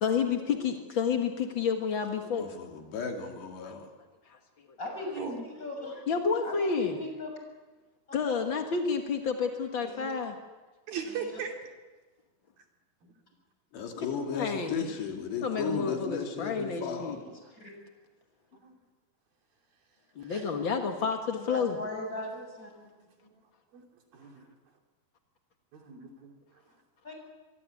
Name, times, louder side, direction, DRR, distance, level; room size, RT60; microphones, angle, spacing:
voice 1, 0.0-2.5 3.6-3.7 4.3-4.4 5.8-7.0 8.1-10.3 14.3-14.7 15.4-17.2 20.1-21.8, left 6 dB, 65° left, 4 dB, 1.2 m, -30 dB
voice 2, 2.4-3.9 13.7-17.2, left 6 dB, 85° left, 2 dB, 5.2 m, -35 dB
voice 3, 4.8-5.2 5.6-6.0 6.4-7.3 9.8-10.1 11.1-11.4 14.0-14.1 17.1-17.7 21.4-22.7 27.0-27.1, left 1 dB, 20° left, 2 dB, 7.1 m, -39 dB
voice 4, 10.9-11.6 13.0-13.1 18.6-18.8 20.2-20.7 23.0-23.3 23.7-23.8 24.1-24.5 25.7-26.4, right 6 dB, 60° right, 2 dB, 4.6 m, -39 dB
26.0 x 23.5 x 8.5 m, 1.3 s
omnidirectional pair, 4.8 m